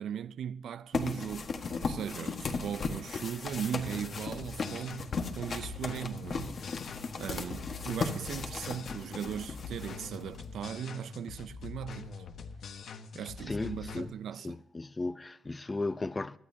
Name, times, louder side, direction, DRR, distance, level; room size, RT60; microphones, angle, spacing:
voice 1, 0.0-1.5 1.8-6.8 7.2-12.2 13.1-14.6, right 8 dB, 75° right, 0.4 m, -38 dB
sound 1, 0.9-10.5, left 4 dB, 45° left, 1.4 m, -37 dB
sound 2, 3.9-14.0, left 5 dB, 70° left, 1.2 m, -44 dB
voice 2, 13.5-14.1 14.4-16.4, left 2 dB, 20° left, 0.6 m, -35 dB
23.0 x 12.0 x 2.8 m
cardioid pair, 130°, 0 cm